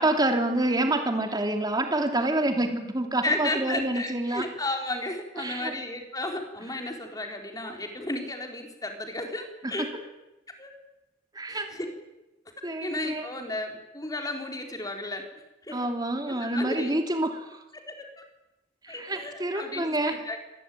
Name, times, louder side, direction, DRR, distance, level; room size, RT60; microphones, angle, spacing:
voice 1, 0.0-4.5 5.4-5.7 9.6-9.9 11.3-11.7 12.6-13.3 15.7-17.6 18.8-20.2, right 1 dB, 20° right, 5 dB, 2.9 m, -27 dB
voice 2, 3.2-9.9 10.6-10.7 11.5-11.9 12.8-15.2 15.6-15.9 16.3-16.9 17.7-18.1 18.9-20.4, left 2 dB, 20° left, 4 dB, 3.9 m, -33 dB
25.5 x 20.5 x 9.3 m, 0.99 s
head